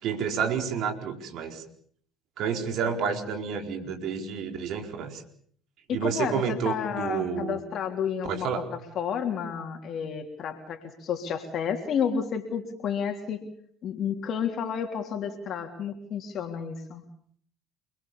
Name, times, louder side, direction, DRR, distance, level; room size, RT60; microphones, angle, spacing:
voice 1, 0.0-1.6 2.4-5.2 5.9-7.6 8.3-8.7, right 6 dB, 55° right, 5 dB, 4.6 m, -30 dB
voice 2, 5.9-8.6 8.9-13.4 13.8-17.0, left 7 dB, 50° left, 5 dB, 3.4 m, -31 dB
28.5 x 21.5 x 7.2 m, 0.62 s
figure-of-eight pair, 60°, 0 cm